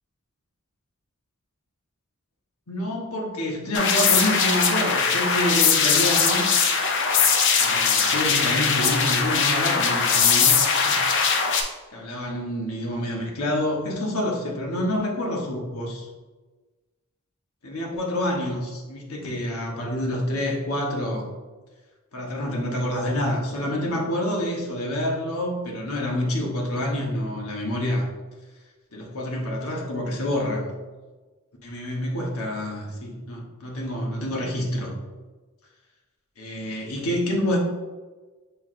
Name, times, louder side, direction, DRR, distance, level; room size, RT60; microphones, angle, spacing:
voice 1, 2.7-6.5 7.5-10.5 10.8-11.1 11.9-16.1 17.6-21.3 22.1-28.1 28.9-30.6 31.6-34.9 36.4-37.6, left 1 dB, 80° left, -1 dB, 1.0 m, -27 dB
sound 1, 3.7-11.6, left 5 dB, 55° left, 0.5 m, -20 dB
5.9 x 3.2 x 2.5 m, 1.3 s
head